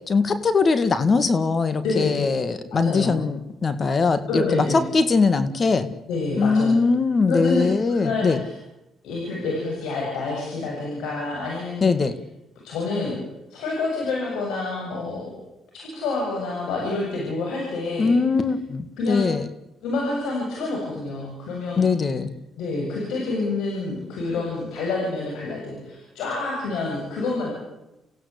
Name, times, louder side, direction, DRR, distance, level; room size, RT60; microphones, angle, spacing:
voice 1, 0.1-5.9 6.4-8.4 11.8-12.1 18.0-19.4 21.8-22.3, left 4 dB, 40° left, 11 dB, 2.0 m, -21 dB
voice 2, 1.8-2.2 2.7-3.1 4.3-4.8 6.1-6.8 7.3-8.5 9.0-11.9 12.6-13.2 13.5-15.3 15.7-18.1 19.0-19.2 19.8-21.9 22.6-27.5, left 3 dB, 90° left, -2 dB, 7.6 m, -28 dB
29.5 x 15.5 x 8.4 m, 0.92 s
cardioid pair, 90°, 0 cm